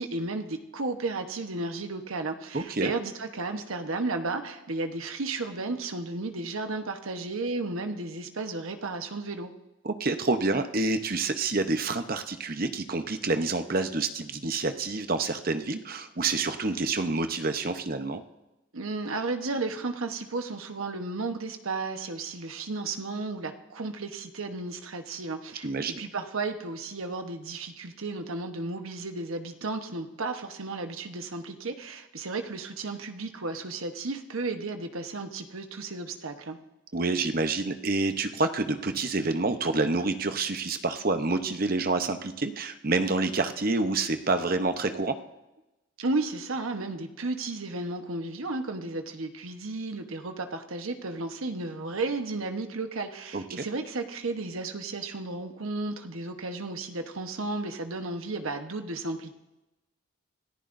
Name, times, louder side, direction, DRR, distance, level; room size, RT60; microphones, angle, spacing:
voice 1, 0.0-9.5 18.7-36.6 46.0-59.3, right 3 dB, 85° right, 6 dB, 1.1 m, -33 dB
voice 2, 2.5-2.9 9.8-18.2 25.6-25.9 36.9-45.2 53.3-53.7, right 3 dB, 45° right, 8 dB, 0.8 m, -28 dB
26.5 x 14.5 x 2.6 m, 1.0 s
head